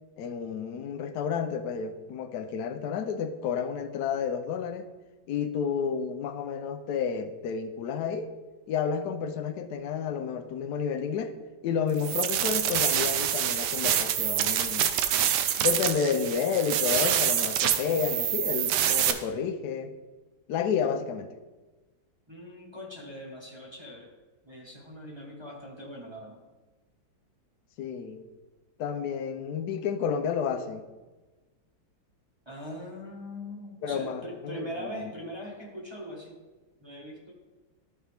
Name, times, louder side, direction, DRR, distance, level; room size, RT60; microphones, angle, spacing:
voice 1, 0.2-4.9 5.3-8.3 8.7-11.3 11.6-14.9 15.6-19.9 20.5-21.3 27.8-28.3 28.8-30.8 33.8-34.7 35.0-35.1, left 7 dB, 70° left, 7 dB, 1.1 m, -30 dB
sound 1, 12.0-19.1, right 10 dB, 70° right, 1.1 m, -26 dB
voice 2, 22.3-24.1 24.4-26.4 32.4-36.4 36.8-37.3, equal, 15° right, -3 dB, 1.2 m, -41 dB
12.5 x 4.5 x 3.4 m, 1.2 s
omnidirectional pair, 2.1 m